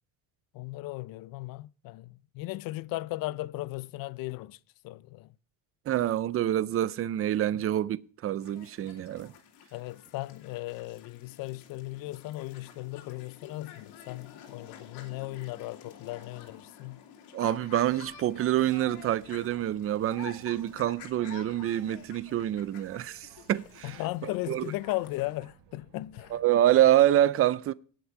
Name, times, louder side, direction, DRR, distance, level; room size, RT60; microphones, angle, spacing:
voice 1, 0.5-4.6 4.8-5.3 7.5-7.6 9.7-17.0 23.8-26.4, left 18 dB, 60° left, 0.5 m, -37 dB
voice 2, 5.9-9.3 17.3-24.0 24.5-24.6 26.3-27.7, right 12 dB, 35° right, 0.5 m, -26 dB
sound 1, 8.4-25.4, left 8 dB, 90° left, 2.5 m, -50 dB
Boat Water vehicle, 17.6-26.9, right 7 dB, 90° right, 2.4 m, -56 dB
18.0 x 6.0 x 4.6 m
cardioid pair, 140°, 39 cm